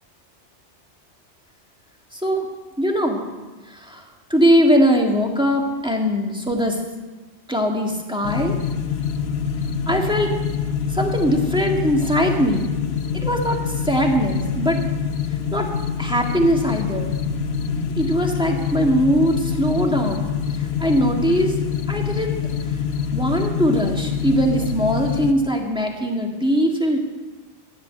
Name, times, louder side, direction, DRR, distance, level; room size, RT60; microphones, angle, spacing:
voice 1, 2.1-2.5 2.8-3.2 3.7-4.1 4.3-6.8 7.5-8.6 9.9-10.3 10.9-12.7 13.1-14.8 15.5-15.7 16.0-17.1 18.0-20.3 20.6-21.5 21.9-22.3 23.1-27.0, equal, 5° right, 0 dB, 1.8 m, -21 dB
sound 1, 8.2-25.3, left 7 dB, 65° left, 0.9 m, -25 dB
14.5 x 11.0 x 6.7 m, 1.2 s
omnidirectional pair, 1.2 m